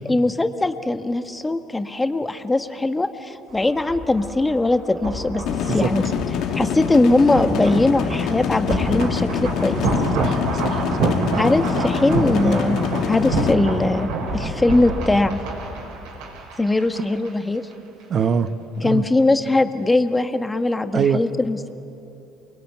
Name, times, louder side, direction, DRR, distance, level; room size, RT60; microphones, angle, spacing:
voice 1, 0.0-6.0 6.5-9.9 11.3-15.4 16.6-17.6 18.8-21.7, left 2 dB, 15° left, 8 dB, 1.7 m, -21 dB
sound 1, 3.5-17.3 17.6-17.7, right 2 dB, 70° right, 6.1 m, -28 dB
sound 2, 5.5-13.5, left 7 dB, 60° left, 1.7 m, -25 dB
voice 2, 10.1-11.2 18.1-18.5 18.8-19.0 20.9-21.2, right 7 dB, 45° right, 11 dB, 1.2 m, -23 dB
28.0 x 22.5 x 9.4 m, 2.8 s
hypercardioid pair, 55°, 0 cm